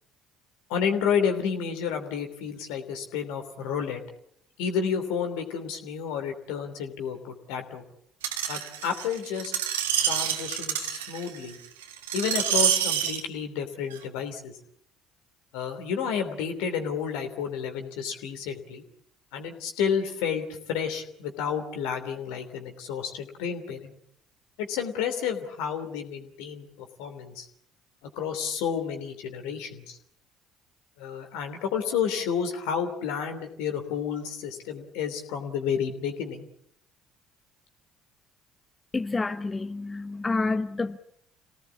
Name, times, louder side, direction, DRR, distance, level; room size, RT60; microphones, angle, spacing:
voice 1, 0.7-4.0 4.6-7.8 8.5-9.5 10.1-11.6 12.1-14.5 15.5-18.8 19.3-23.9 24.6-27.5 28.1-30.0 31.0-36.4, left 7 dB, 70° left, 6 dB, 3.1 m, -30 dB
Screech, 8.2-13.2 13.9-14.0, right 9 dB, 80° right, 1.6 m, -27 dB
voice 2, 38.9-41.0, left 3 dB, 25° left, 9 dB, 1.1 m, -28 dB
27.5 x 18.0 x 8.5 m, 0.72 s
figure-of-eight pair, 55°, 0 cm